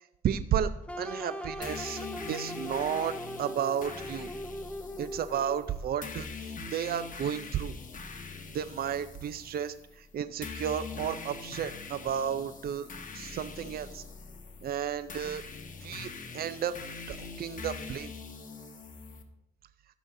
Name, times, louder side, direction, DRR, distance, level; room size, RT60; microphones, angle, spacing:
voice 1, 0.2-0.7 1.0-4.3 5.0-7.8 8.5-12.9 13.1-14.0 14.6-15.4 15.8-16.8 17.1-18.1, right 9 dB, 70° right, 12 dB, 0.4 m, -33 dB
sound 1, 0.9-5.8, equal, 5° left, 0.6 m, -40 dB
sound 2, 1.6-19.2, left 4 dB, 55° left, 1.1 m, -43 dB
15.0 x 6.3 x 2.6 m, 0.83 s
cardioid pair, 65°, 16 cm